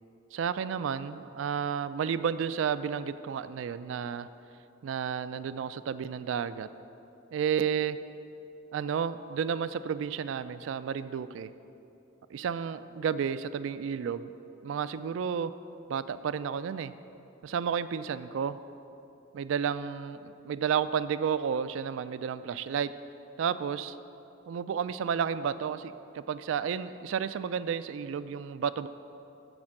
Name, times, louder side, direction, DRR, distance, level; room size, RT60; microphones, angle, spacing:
voice 1, 0.3-4.3 4.8-6.7 7.3-8.0 8.7-11.5 12.3-14.3 14.6-15.5 15.9-16.9 17.4-18.6 19.3-22.9 23.4-24.0 24.5-28.9, right 7 dB, 85° right, 14 dB, 0.3 m, -31 dB
13.0 x 4.4 x 6.4 m, 2.8 s
head